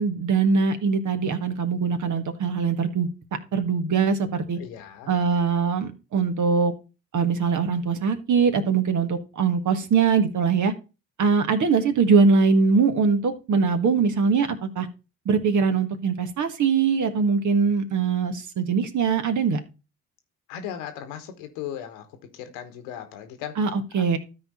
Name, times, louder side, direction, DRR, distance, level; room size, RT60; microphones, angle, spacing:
voice 1, 0.0-3.1 3.5-4.6 5.1-6.7 7.1-10.7 11.2-14.9 15.2-19.6 23.6-24.2, right 5 dB, 55° right, 1.6 m, -22 dB
voice 2, 4.6-5.1 20.5-22.1 22.3-23.6 23.9-24.2, left 9 dB, 85° left, 1.3 m, -37 dB
13.0 x 4.4 x 4.2 m
hypercardioid pair, 50°, 35 cm